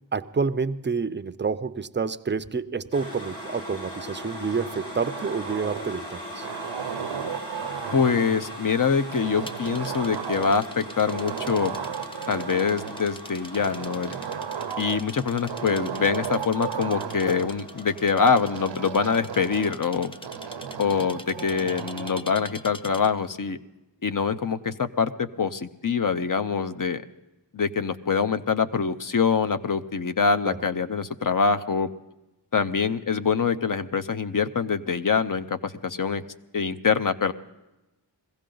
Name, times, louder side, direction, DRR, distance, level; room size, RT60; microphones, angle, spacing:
voice 1, 0.1-6.5 30.5-30.6, right 5 dB, 25° right, 12 dB, 0.5 m, -28 dB
sound 1, 2.9-20.9, equal, 70° left, 5.5 m, -41 dB
sound 2, 4.5-6.0 6.4-8.5 9.1-10.8 11.1-13.1 13.5-15.1 15.5-17.5 18.3-19.8 20.2-22.3, right 7 dB, 80° right, 0.7 m, -34 dB
voice 2, 7.9-11.8 12.3-14.2 14.8-20.1 20.8-23.6 24.0-27.0 27.5-31.9 32.5-36.2 36.5-37.3, left 5 dB, 45° left, 11 dB, 0.6 m, -24 dB
sound 3, 9.5-23.2, left 1 dB, 10° left, 0.7 m, -44 dB
21.5 x 16.0 x 3.9 m, 0.99 s
wide cardioid pair, 65°, 44 cm